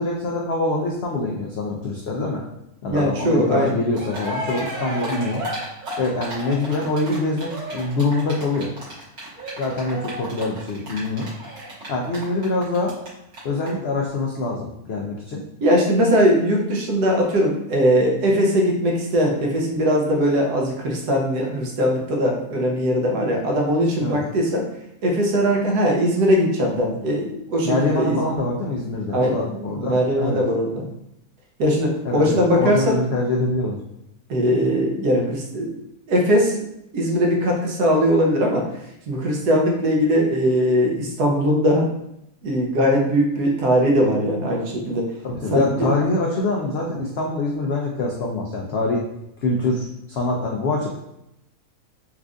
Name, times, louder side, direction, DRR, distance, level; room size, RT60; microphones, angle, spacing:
voice 1, 0.0-2.4 2.8-5.4 6.0-8.7 9.6-11.3 11.9-13.0 13.4-15.4 24.0-24.2 27.6-30.4 32.0-33.8 45.2-49.0 49.4-50.9, left 2 dB, 85° left, -1 dB, 0.5 m, -24 dB
voice 2, 2.9-3.8 15.6-24.7 25.0-28.2 29.1-30.9 31.6-33.0 34.3-35.7 36.1-36.6 36.9-38.6 39.1-41.9 42.4-45.1 45.5-45.9, equal, 90° right, 0 dB, 1.3 m, -20 dB
Cheering, 3.7-3.8 3.9-13.1 13.3-13.4 13.7-13.8, right 1 dB, 65° right, 1.7 m, -33 dB
4.4 x 2.4 x 2.4 m, 0.81 s
omnidirectional pair, 1.7 m